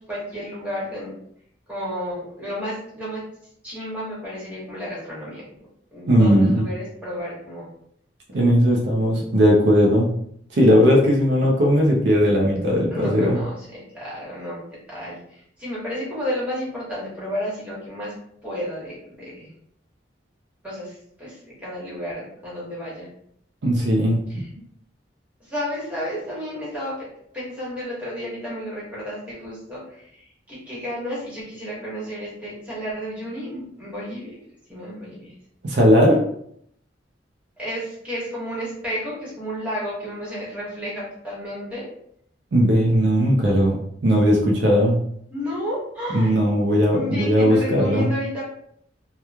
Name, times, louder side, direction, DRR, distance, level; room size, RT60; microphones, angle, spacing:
voice 1, 0.1-1.1 1.7-3.2 3.6-5.4 5.9-7.7 12.9-14.6 14.9-18.1 18.4-19.5 20.6-23.1 24.3-24.5 25.4-27.1 27.3-34.3 34.7-35.3 37.6-41.9 45.3-46.4 46.9-48.4, equal, 5° right, -8 dB, 1.2 m, -32 dB
voice 2, 6.1-6.6 8.3-10.1 10.5-13.4 23.6-24.2 35.6-36.2 42.5-43.8 44.0-45.0 46.1-48.1, equal, 65° right, -2 dB, 0.5 m, -18 dB
2.9 x 2.2 x 2.3 m, 0.68 s
head